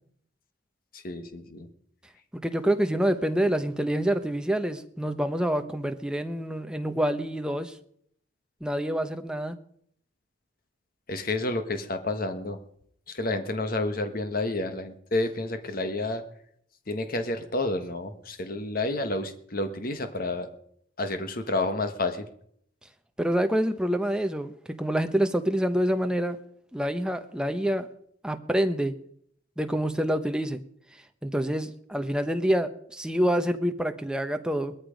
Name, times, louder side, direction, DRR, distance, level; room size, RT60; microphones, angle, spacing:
voice 1, 0.9-1.7 11.1-12.6 13.1-16.2 16.9-20.5 21.0-22.3, left 2 dB, 45° left, 8 dB, 1.4 m, -30 dB
voice 2, 2.3-7.8 8.6-9.6 23.2-26.4 26.7-27.9 28.2-29.0 29.6-30.6 31.2-34.8, equal, 5° right, 7 dB, 0.9 m, -27 dB
19.0 x 13.5 x 5.2 m, 0.68 s
head